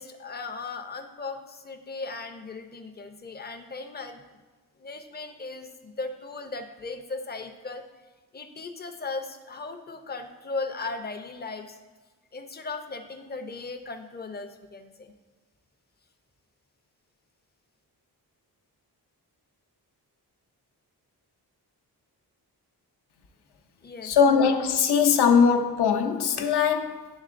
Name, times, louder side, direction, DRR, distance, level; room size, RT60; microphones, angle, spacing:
voice 1, 0.0-4.2 4.8-7.8 8.3-11.8 12.3-15.1 23.8-24.2, left 3 dB, 25° left, 0.4 m, -37 dB
voice 2, 24.0-27.1, left 6 dB, 75° left, 0.7 m, -21 dB
10.5 x 3.7 x 2.5 m
wide cardioid pair, 155°, 39 cm